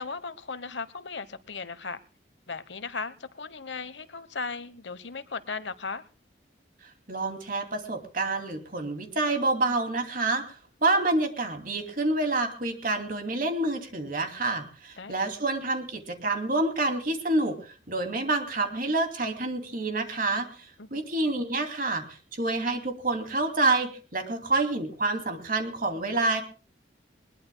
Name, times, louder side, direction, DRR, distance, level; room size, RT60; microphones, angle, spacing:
voice 1, 0.0-2.0 2.5-6.0 15.0-15.1 20.8-21.0, left 4 dB, 75° left, 14 dB, 1.1 m, -37 dB
voice 2, 7.1-10.5 10.8-26.4, right 2 dB, 50° right, 5 dB, 2.8 m, -28 dB
21.0 x 21.0 x 2.3 m, 0.35 s
head